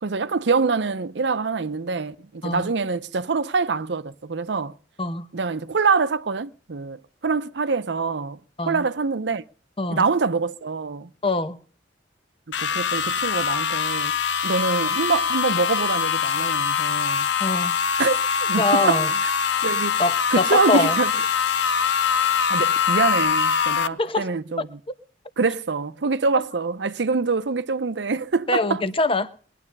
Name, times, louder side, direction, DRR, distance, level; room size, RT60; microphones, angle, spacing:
voice 1, 0.0-4.7 5.3-7.0 7.2-8.4 8.7-9.4 9.9-11.1 12.6-14.1 14.4-17.3 18.0-19.3 19.6-20.0 20.3-21.1 22.2-24.7 25.4-28.8, right 4 dB, 70° right, 0.7 m, -25 dB
voice 2, 11.2-11.6 17.4-17.7 18.6-19.1 20.0-21.0 24.0-24.3 24.6-24.7 26.4-26.5 28.5-29.3, left 2 dB, 30° left, 1.0 m, -23 dB
sound 1, 12.5-23.9, left 6 dB, 85° left, 0.7 m, -23 dB
21.0 x 11.0 x 5.3 m
head